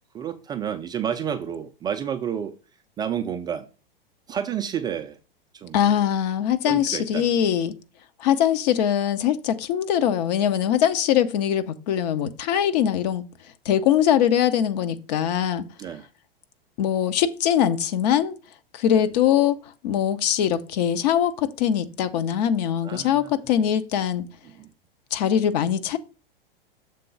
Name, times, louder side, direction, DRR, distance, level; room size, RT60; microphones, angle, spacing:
voice 1, 0.1-2.5 3.0-3.7 4.3-5.2 5.5-5.9 6.6-7.3 15.8-16.1 18.9-19.0 22.8-23.7 24.6-24.7, right 8 dB, 15° right, 0.4 m, -30 dB
voice 2, 5.7-7.7 8.2-13.3 13.6-15.6 16.8-18.3 18.7-19.6 19.8-24.2 25.1-26.0, left 10 dB, 45° left, 0.8 m, -22 dB
6.9 x 3.8 x 5.1 m
figure-of-eight pair, 100°, 29 cm